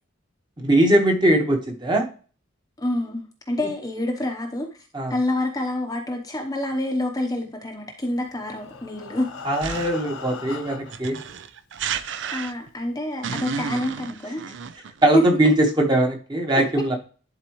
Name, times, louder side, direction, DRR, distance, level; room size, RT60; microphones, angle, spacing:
voice 1, 0.6-2.0 4.9-5.1 9.4-11.2 15.0-17.0, right 1 dB, 20° right, 3 dB, 1.2 m, -20 dB
voice 2, 2.8-4.7 5.1-9.3 12.3-14.4 15.1-15.5, left 1 dB, 15° left, 2 dB, 0.8 m, -26 dB
Breathing, 8.2-11.1 11.9-12.0 12.4-12.5 12.9-13.0, left 4 dB, 80° left, 1.2 m, -39 dB
sound 1, 9.6-10.1 10.9-12.8 13.2-15.1, right 6 dB, 60° right, 0.5 m, -32 dB
11.0 x 4.1 x 3.0 m, 0.37 s
head